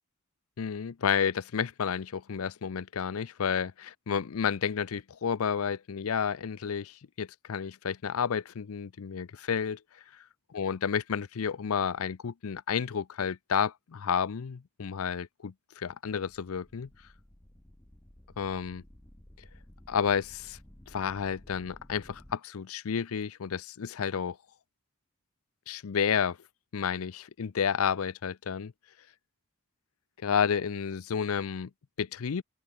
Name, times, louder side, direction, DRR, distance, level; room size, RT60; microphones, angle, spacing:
voice 1, 0.6-3.7 4.1-9.8 10.5-16.9 18.4-18.8 19.9-20.6 20.9-24.4 25.7-26.4 26.7-28.7 30.2-31.7 32.0-32.4, left 7 dB, 80° left, 0.5 m, -31 dB
sound 1, 16.1-22.4, left 1 dB, 15° left, 0.9 m, -54 dB
open air
head